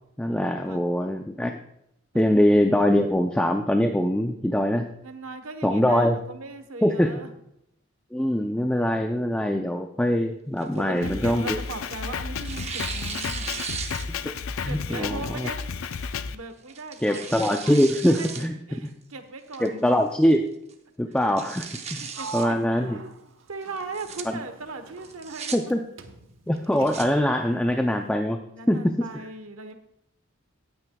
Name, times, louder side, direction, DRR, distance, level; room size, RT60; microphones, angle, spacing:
voice 1, 0.2-1.6 2.1-4.9 5.6-6.2 6.8-7.1 8.1-11.6 14.2-15.5 17.0-18.9 19.6-20.4 21.0-22.0 22.3-23.0 24.3-24.4 25.5-25.8 26.5-28.4 28.7-29.1, equal, 5° left, 4 dB, 0.4 m, -23 dB
voice 2, 5.0-7.3 10.6-13.5 14.7-15.6 16.3-18.3 18.7-19.9 22.0-23.0 23.5-25.6 28.5-29.7, right 3 dB, 85° right, 8 dB, 1.1 m, -38 dB
Tearing, 10.6-11.9 12.4-14.4 14.8-14.9 15.8-16.1 16.7-18.5 18.9-19.0 19.5-19.9 20.3-20.4 20.7-20.8 21.2-22.5 23.8-24.2 25.0-25.6 26.6-27.1, right 6 dB, 30° right, 0.8 m, -37 dB
Drum kit, 11.0-16.4, left 5 dB, 85° left, 0.5 m, -32 dB
Sliding door, 22.1-25.7 26.0-27.3, right 4 dB, 70° right, 0.9 m, -41 dB
17.0 x 9.3 x 2.3 m, 0.77 s
head